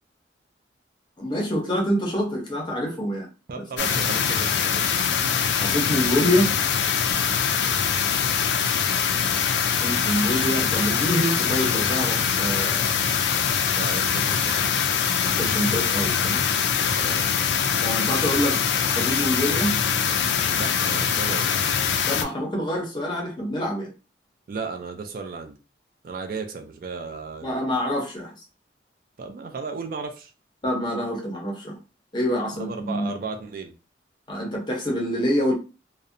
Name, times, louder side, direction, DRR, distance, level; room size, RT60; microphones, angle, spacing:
voice 1, 1.2-3.3 3.6-3.7 5.6-6.5 9.6-12.9 15.2-16.4 17.8-18.6 18.8-19.7 22.1-23.9 27.4-28.3 30.6-31.8 32.1-33.1 34.3-35.5, equal, 25° left, 0 dB, 0.6 m, -26 dB
voice 2, 3.5-5.0 13.7-14.8 16.9-17.3 20.5-21.6 24.5-25.6 26.0-27.7 29.2-30.3 32.6-33.7, right 4 dB, 50° right, 4 dB, 0.3 m, -35 dB
sound 1, 3.8-22.2, left 7 dB, 70° left, 0.3 m, -23 dB
2.6 x 2.0 x 2.5 m, 0.32 s
head